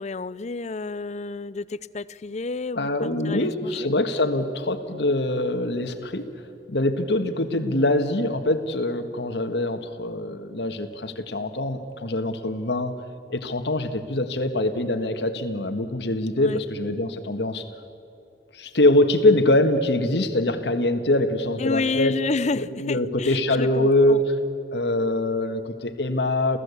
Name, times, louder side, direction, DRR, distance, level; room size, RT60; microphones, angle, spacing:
voice 1, 0.0-3.9 16.4-16.6 21.6-24.2, left 3 dB, 40° left, 18 dB, 0.5 m, -30 dB
voice 2, 2.7-6.3 6.7-13.0 13.3-17.6 18.5-22.2 22.5-24.4 24.7-26.6, left 1 dB, 70° left, 7 dB, 1.6 m, -23 dB
28.0 x 15.5 x 8.3 m, 2.7 s
head